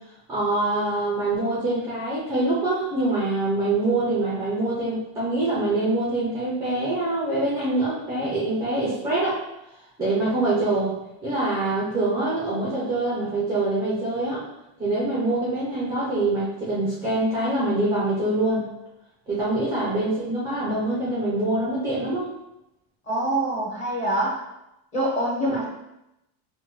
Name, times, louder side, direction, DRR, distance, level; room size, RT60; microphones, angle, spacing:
voice 1, 0.3-9.4 10.0-10.9 11.2-14.4 14.8-18.6 19.3-22.3 25.5-25.6, right 2 dB, 5° right, -7 dB, 0.3 m, -24 dB
voice 2, 23.1-24.4 24.9-25.7, right 1 dB, 15° left, -6 dB, 0.8 m, -25 dB
6.0 x 2.2 x 3.0 m, 0.89 s
cardioid pair, 175°, 48 cm